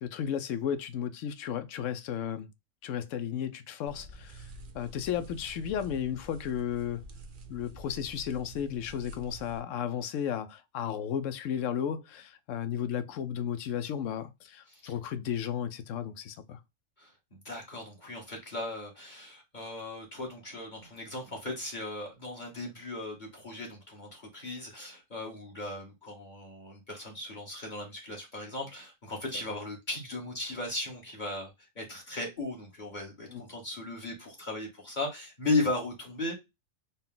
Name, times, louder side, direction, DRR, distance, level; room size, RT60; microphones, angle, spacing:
voice 1, 0.0-2.5 2.8-4.5 4.7-7.0 7.5-16.6 33.3-33.4, left 9 dB, 80° left, 1.0 m, -34 dB
sound 1, 3.9-9.6, right 2 dB, 50° right, 0.7 m, -47 dB
voice 2, 17.0-36.3, left 2 dB, 40° left, 1.4 m, -36 dB
4.1 x 2.2 x 3.6 m
omnidirectional pair, 1.3 m